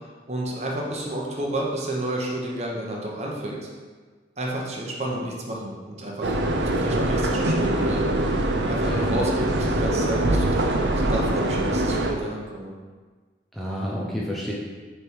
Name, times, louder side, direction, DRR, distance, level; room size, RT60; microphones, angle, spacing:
voice 1, 0.3-3.7 4.4-6.4 6.8-12.7, right 1 dB, 35° right, -2 dB, 0.9 m, -31 dB
sound 1, 6.2-12.1, right 1 dB, 75° right, 0.6 m, -23 dB
voice 2, 8.8-9.6 13.5-14.5, equal, ahead, -5 dB, 0.6 m, -30 dB
6.6 x 3.4 x 4.6 m, 1.4 s
head